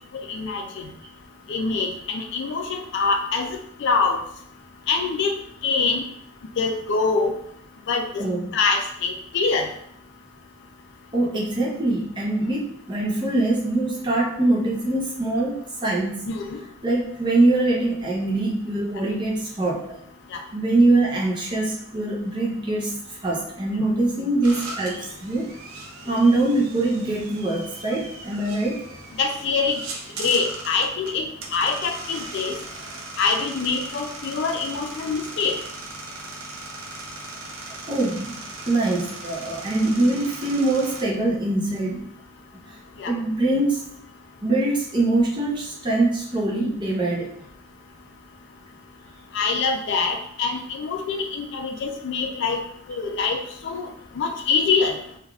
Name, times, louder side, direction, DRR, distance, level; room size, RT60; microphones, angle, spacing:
voice 1, 0.3-0.6 1.5-3.5 3.8-4.2 4.9-5.3 5.6-6.0 6.6-7.3 7.9-8.2 8.5-9.7 16.3-16.6 20.3-20.4 29.2-29.8 30.2-31.2 31.5-32.5 33.2-35.6 43.0-43.1 49.3-52.6 52.9-53.9 54.2-54.9, left 4 dB, 55° left, 4 dB, 0.3 m, -24 dB
voice 2, 8.2-8.5 11.1-16.3 16.8-20.0 20.5-25.5 26.1-28.8 37.9-38.4 38.7-42.1 42.7-42.8 43.1-43.8 44.4-47.3, right 2 dB, 20° right, -3 dB, 0.6 m, -23 dB
sound 1, 24.4-41.0, right 2 dB, 80° right, 0.5 m, -38 dB
3.3 x 2.3 x 2.3 m, 0.70 s
head